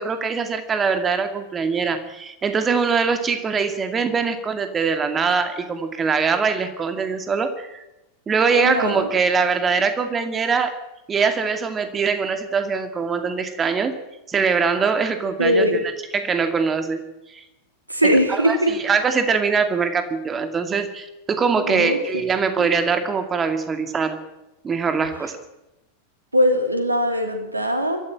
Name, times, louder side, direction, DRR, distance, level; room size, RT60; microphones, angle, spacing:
voice 1, 0.0-7.8 8.3-10.7 11.1-13.9 14.3-15.8 16.1-17.0 17.3-17.4 18.0-24.2 24.6-25.4, right 5 dB, 20° right, 8 dB, 2.3 m, -22 dB
voice 2, 8.5-9.1 15.4-15.8 17.9-18.7 21.6-22.0 22.6-22.7 26.3-28.0, equal, 85° right, 6 dB, 3.2 m, -20 dB
23.0 x 14.0 x 8.8 m, 0.95 s
figure-of-eight pair, 90°, 0 cm